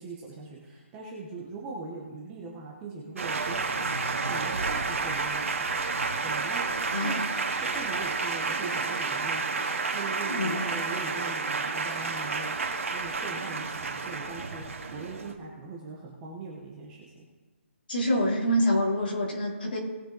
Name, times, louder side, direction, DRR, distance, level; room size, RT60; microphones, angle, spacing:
voice 1, 0.0-14.6 14.9-17.3, right 3 dB, 10° right, -4 dB, 0.9 m, -41 dB
Male speech man speaking, 3.2-15.3, right 4 dB, 90° right, 1.8 m, -30 dB
voice 2, 6.9-7.2 10.3-10.6 17.9-19.8, equal, 45° left, -3 dB, 3.4 m, -26 dB
19.0 x 6.9 x 3.9 m, 1.2 s
hypercardioid pair, 180°, 7 cm